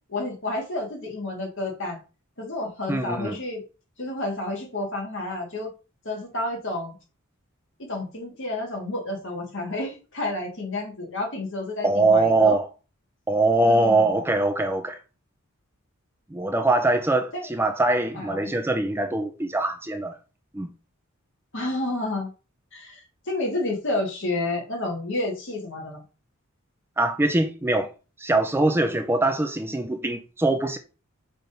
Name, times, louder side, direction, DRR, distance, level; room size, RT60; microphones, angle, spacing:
voice 1, 0.1-2.0 2.4-3.6 4.0-5.7 6.0-7.0 7.8-12.6 13.6-14.2 17.3-17.5 18.1-18.4 21.5-22.3 22.7-26.0, left 2 dB, 60° left, 2.3 m, -30 dB
voice 2, 2.9-3.4 11.8-12.7 13.3-15.0 16.3-20.2 20.5-20.7 27.0-27.9 28.2-30.8, right 2 dB, 10° right, 0.5 m, -22 dB
6.0 x 3.4 x 5.3 m
head